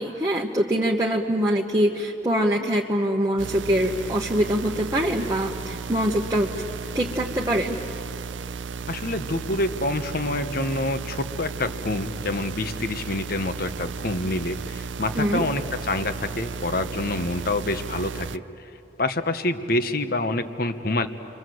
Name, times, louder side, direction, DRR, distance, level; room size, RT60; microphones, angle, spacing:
voice 1, 0.0-6.6 6.9-7.8 15.2-15.5, equal, 20° right, -2 dB, 1.2 m, -24 dB
sound 1, 3.4-18.4, right 5 dB, 85° right, 0.6 m, -34 dB
voice 2, 8.9-18.7 19.0-21.1, left 2 dB, 55° left, 9 dB, 1.2 m, -27 dB
29.5 x 23.5 x 7.9 m, 2.8 s
head